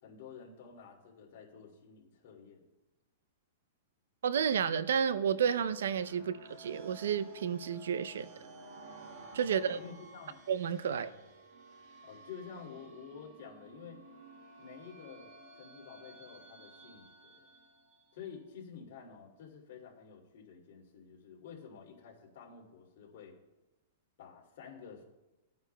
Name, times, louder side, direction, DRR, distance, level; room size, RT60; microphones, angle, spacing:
voice 1, 0.0-2.6 6.2-6.3 9.5-10.4 10.9-11.2 12.0-14.0 14.6-15.3 15.6-17.5 18.1-23.4 24.2-25.0, left 6 dB, 55° left, 2.5 m, -50 dB
voice 2, 4.2-8.3 9.3-9.8 10.5-11.1, right 7 dB, 85° right, 0.5 m, -31 dB
sound 1, 5.8-18.3, right 3 dB, 45° right, 1.7 m, -54 dB
18.5 x 9.4 x 2.2 m
supercardioid pair, 165°, 0 cm